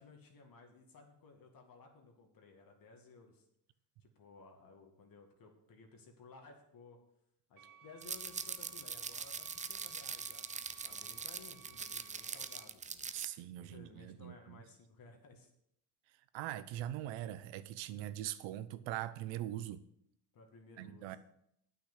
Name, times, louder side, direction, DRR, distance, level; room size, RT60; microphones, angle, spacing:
voice 1, 0.0-3.5 4.0-7.0 7.5-10.5 10.8-13.0 13.6-15.5 20.3-21.2, left 4 dB, 45° left, 2 dB, 2.2 m, -58 dB
sound 1, 7.6-12.7, right 7 dB, 45° right, 1.1 m, -60 dB
sound 2, 8.0-13.3, right 5 dB, 15° right, 0.5 m, -42 dB
voice 2, 13.1-14.6 16.3-19.8 20.8-21.2, right 13 dB, 65° right, 14 dB, 0.9 m, -42 dB
8.5 x 6.2 x 8.0 m, 0.74 s
supercardioid pair, 85°, 47 cm